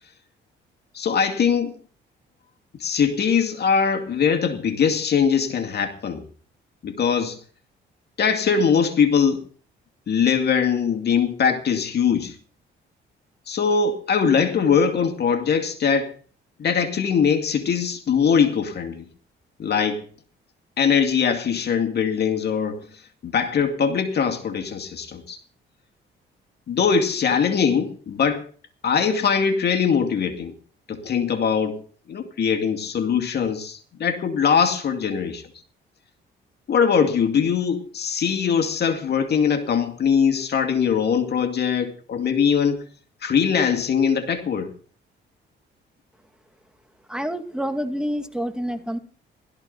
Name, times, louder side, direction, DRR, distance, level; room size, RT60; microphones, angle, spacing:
voice 1, 0.9-1.8 2.8-6.2 6.8-7.4 8.2-9.4 10.1-12.4 13.5-16.1 16.6-19.1 19.6-20.0 20.8-22.9 23.2-25.4 26.7-28.5 28.8-30.5 30.9-31.8 32.1-35.4 36.7-42.8 43.2-44.7, left 6 dB, 55° left, 2.3 m, -21 dB
voice 2, 47.1-49.0, equal, 5° right, 2.3 m, -27 dB
16.5 x 13.5 x 4.1 m
cardioid pair, 90°, 20 cm